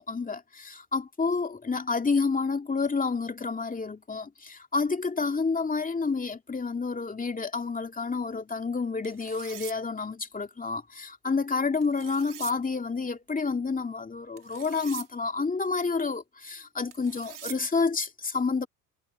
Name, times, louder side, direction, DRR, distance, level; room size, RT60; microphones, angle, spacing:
voice 1, 0.0-18.7, left 4 dB, 15° left, 2.4 m, -29 dB
sound 1, 9.0-9.8 11.8-12.5 14.4-15.1 16.9-17.6, right 10 dB, 40° right, 3.2 m, -43 dB
hypercardioid pair, 70°, 48 cm